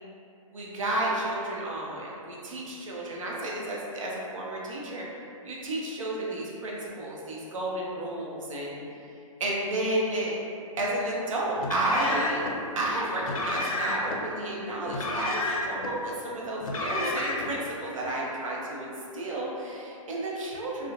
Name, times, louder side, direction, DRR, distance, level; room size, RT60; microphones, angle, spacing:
voice 1, 0.5-5.1 5.4-8.8 9.4-10.4 10.8-12.4 12.8-20.9, right 1 dB, 65° right, -4 dB, 0.6 m, -31 dB
Car, 11.6-12.5 13.2-14.2 14.9-15.9 16.6-17.5, left 2 dB, 85° left, 0.4 m, -31 dB
2.6 x 2.0 x 2.5 m, 2.6 s
hypercardioid pair, 175°, 18 cm